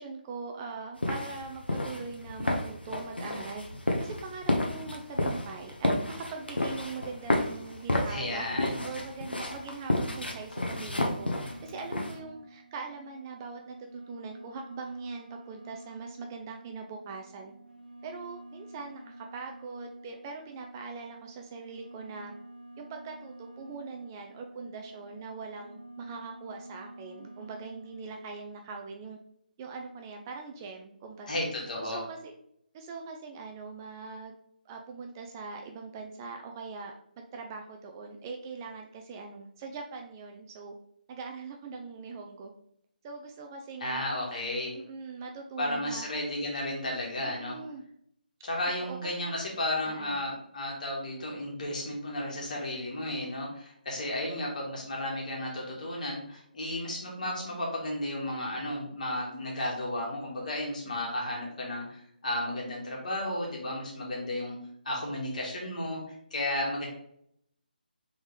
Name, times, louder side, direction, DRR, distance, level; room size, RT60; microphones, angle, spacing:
voice 1, 0.0-3.6 4.0-8.5 8.8-17.5 18.0-22.3 22.8-29.2 29.6-31.3 31.8-32.3 32.7-34.3 34.7-36.9 37.3-40.7 41.1-42.5 43.0-44.0 44.7-46.1 47.2-47.8 48.8-49.0 49.8-50.3, right 4 dB, 20° right, 3 dB, 0.4 m, -42 dB
sound 1, 1.0-12.2, left 1 dB, 90° left, 0.9 m, -31 dB
voice 2, 8.1-8.8 31.3-32.0 43.8-44.7 45.6-47.5 48.4-64.6 64.9-66.9, left 1 dB, 50° left, -2 dB, 1.7 m, -33 dB
sound 2, 11.2-28.5, right 1 dB, 65° right, 0.8 m, -50 dB
3.8 x 3.6 x 3.2 m, 0.68 s
figure-of-eight pair, 150°, 5 cm